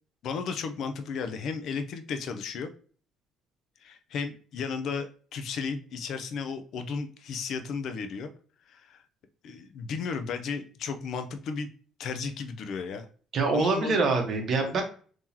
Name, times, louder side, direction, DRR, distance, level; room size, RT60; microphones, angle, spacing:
voice 1, 0.2-2.7 3.8-8.3 8.7-9.0 9.4-11.7 12.0-13.1 13.5-14.0 14.7-14.8, left 5 dB, 65° left, 8 dB, 0.5 m, -34 dB
voice 2, 13.3-14.8, right 3 dB, 55° right, 3 dB, 1.0 m, -25 dB
3.7 x 2.9 x 2.8 m, 0.43 s
cardioid pair, 95°, 0 cm